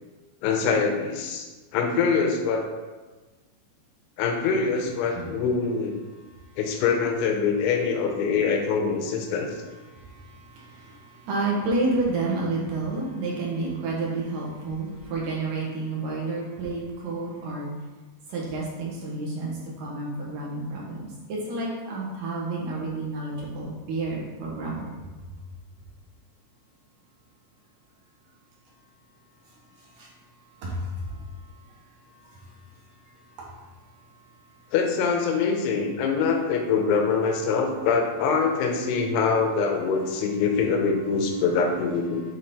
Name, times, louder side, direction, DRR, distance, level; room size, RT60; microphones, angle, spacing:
voice 1, 0.4-1.5 1.7-2.6 4.2-5.9 6.6-9.5 34.7-42.2, left 5 dB, 80° left, 3 dB, 2.8 m, -24 dB
voice 2, 9.9-17.7 18.3-24.9 29.8-30.1 30.6-31.3 32.2-32.4, right 2 dB, 65° right, -4 dB, 2.3 m, -30 dB
9.8 x 3.8 x 4.2 m, 1.2 s
omnidirectional pair, 5.2 m